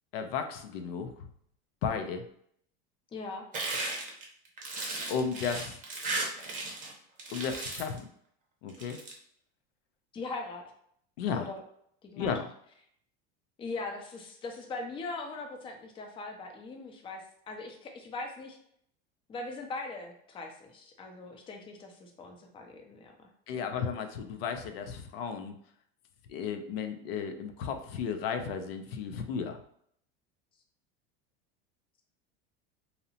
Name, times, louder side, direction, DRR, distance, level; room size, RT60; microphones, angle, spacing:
voice 1, 0.1-1.3 1.8-2.2 5.1-5.8 7.3-8.1 8.6-9.0 11.2-11.5 12.2-12.5 23.5-25.6 26.3-29.6, left 6 dB, 90° left, 7 dB, 0.5 m, -34 dB
voice 2, 3.1-3.5 10.1-10.6 11.3-11.6 12.0-12.3 13.6-17.2 17.5-18.6 19.3-23.1 23.5-23.6, left 3 dB, 20° left, 3 dB, 0.4 m, -40 dB
sound 1, 3.5-6.9 7.2-8.0 8.7-9.1, right 2 dB, 25° right, 0.7 m, -35 dB
2.7 x 2.0 x 2.7 m, 0.67 s
supercardioid pair, 120°, 29 cm